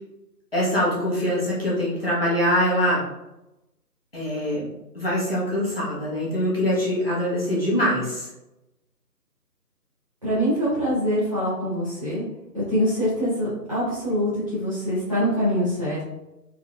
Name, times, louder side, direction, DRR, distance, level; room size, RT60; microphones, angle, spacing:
voice 1, 0.5-3.0 4.1-4.7 4.9-8.3, equal, 35° left, -7 dB, 1.0 m, -23 dB
voice 2, 10.2-12.3 12.5-16.0, equal, 20° right, -14 dB, 1.4 m, -24 dB
3.5 x 3.3 x 2.3 m, 0.94 s
figure-of-eight pair, 180°, 49 cm